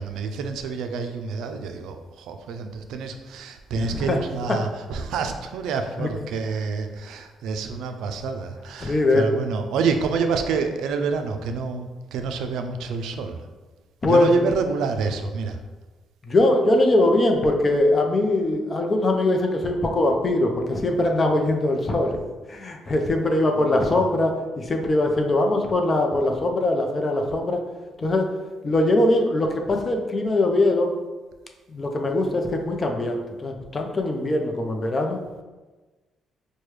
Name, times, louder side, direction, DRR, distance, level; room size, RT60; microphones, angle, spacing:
voice 1, 0.0-13.4 14.0-15.6 23.5-24.0, right 5 dB, 80° right, 6 dB, 0.3 m, -28 dB
voice 2, 3.7-4.2 6.0-6.1 8.8-9.3 14.0-14.5 16.2-22.1 22.5-27.6 28.0-28.3 28.6-30.9 31.7-35.2, left 2 dB, 35° left, 3 dB, 0.5 m, -21 dB
4.6 x 2.2 x 3.1 m, 1.2 s
cardioid pair, 85°, 0 cm